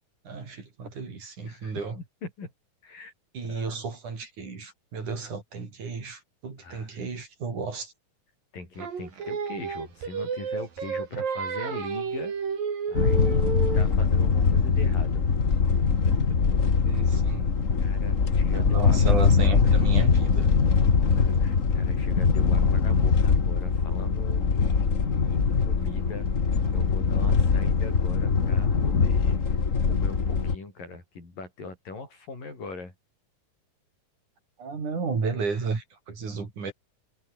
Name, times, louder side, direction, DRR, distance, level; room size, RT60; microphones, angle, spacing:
voice 1, 0.2-2.0 3.3-7.9 16.8-17.5 18.5-20.5 34.6-36.7, right 4 dB, 60° right, 6.4 m, -33 dB
voice 2, 1.4-2.5 2.8-3.1 3.5-3.8 6.6-7.0 8.5-12.4 12.9-13.4 13.7-15.3 16.0-16.4 16.9-17.0 17.8-19.0 21.2-26.3 26.7-29.6 29.9-32.9, left 3 dB, 75° left, 9.8 m, -41 dB
Singing, 8.8-14.0, right 6 dB, 85° right, 5.8 m, -31 dB
sound 1, 12.9-30.5, left 5 dB, 35° left, 1.4 m, -22 dB
omnidirectional pair, 3.9 m